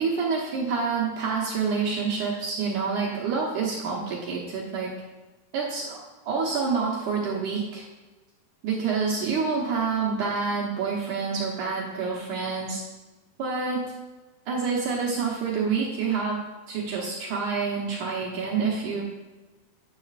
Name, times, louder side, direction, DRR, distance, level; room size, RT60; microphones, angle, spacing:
voice 1, 0.0-4.9 5.5-6.0 6.2-7.9 8.6-12.8 13.4-13.8 14.5-19.0, right 5 dB, 75° right, -4 dB, 1.8 m, -27 dB
10.5 x 9.9 x 2.5 m, 1.2 s
omnidirectional pair, 5.1 m